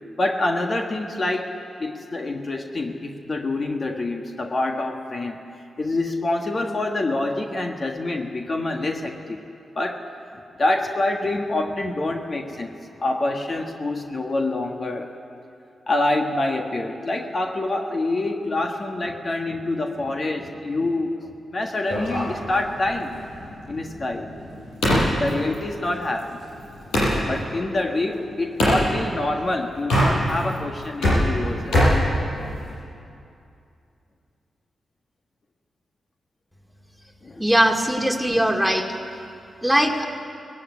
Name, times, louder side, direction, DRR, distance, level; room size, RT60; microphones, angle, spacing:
voice 1, 0.2-1.5 1.8-5.4 5.8-9.4 9.7-10.1 10.3-15.1 15.9-23.2 23.7-24.3 24.9-26.5 26.8-26.9 27.2-31.8 37.2-37.4, left 2 dB, 45° left, 3 dB, 1.6 m, -26 dB
sound 1, 21.9-27.2 28.6-28.9 29.8-30.5 30.8-32.8, equal, 90° left, 7.2 m, -23 dB
voice 2, 37.4-38.9 39.6-40.1, equal, ahead, 2 dB, 2.5 m, -20 dB
18.5 x 16.5 x 9.6 m, 2.6 s
supercardioid pair, 50°, 0 cm